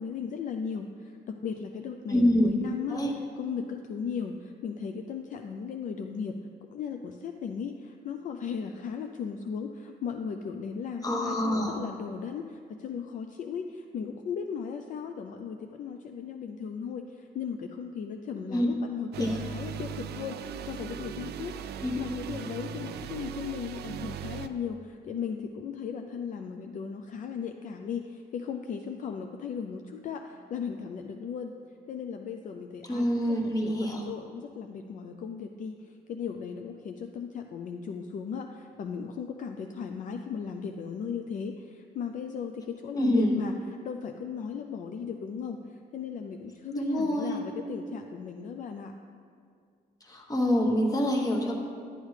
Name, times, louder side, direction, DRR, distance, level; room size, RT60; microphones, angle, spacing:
voice 1, 0.0-6.4 6.7-31.5 31.9-48.9, left 6 dB, 50° left, 5 dB, 0.4 m, -37 dB
voice 2, 2.1-2.5 2.9-3.1 11.0-11.8 18.5-18.7 19.2-19.4 21.8-21.9 32.8-34.1 42.9-43.3 46.7-47.4 50.0-51.6, equal, 20° left, 1 dB, 1.1 m, -26 dB
sound 1, 19.1-24.5, right 8 dB, 80° right, 0.4 m, -38 dB
10.5 x 9.7 x 3.2 m, 2.3 s
wide cardioid pair, 175°, 17 cm